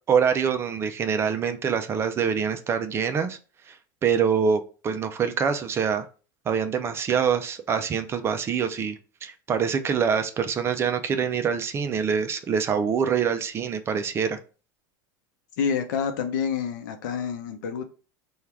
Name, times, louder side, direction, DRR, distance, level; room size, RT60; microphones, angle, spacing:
voice 1, 0.1-3.4 3.7-3.8 4.0-6.1 6.5-14.4, right 7 dB, 25° right, 0.4 m, -25 dB
voice 2, 15.6-17.9, left 6 dB, 80° left, 0.7 m, -28 dB
4.4 x 2.4 x 3.4 m
supercardioid pair, 130°, 10 cm